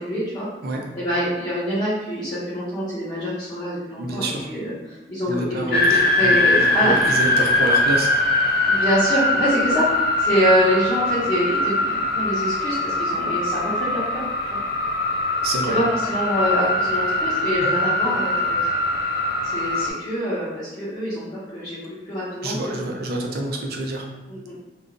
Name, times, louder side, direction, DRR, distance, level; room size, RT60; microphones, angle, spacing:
voice 1, 0.0-0.5 0.9-5.8 6.1-7.0 8.7-9.9 10.2-14.6 15.7-18.6 19.4-22.6 24.3-24.6, equal, 25° left, -12 dB, 0.9 m, -25 dB
voice 2, 4.0-4.5 5.3-6.4 6.8-8.1 15.4-15.8 17.6-17.7 22.4-24.0, right 2 dB, 60° right, 1 dB, 0.5 m, -27 dB
sound 1, 5.7-19.9, left 2 dB, 55° left, 0.5 m, -22 dB
2.5 x 2.3 x 3.7 m, 1.1 s
head